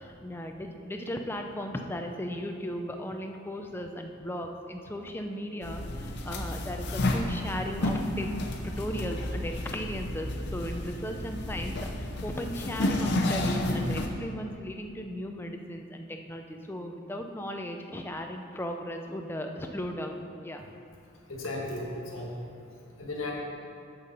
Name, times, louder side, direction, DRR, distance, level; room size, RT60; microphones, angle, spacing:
voice 1, 0.0-20.6, equal, 10° left, 4 dB, 0.5 m, -36 dB
sound 1, 5.6-14.1, left 1 dB, 55° left, 0.7 m, -31 dB
voice 2, 21.3-22.5 23.0-23.3, left 2 dB, 75° left, -2 dB, 1.6 m, -35 dB
7.6 x 6.8 x 5.4 m, 2.5 s
head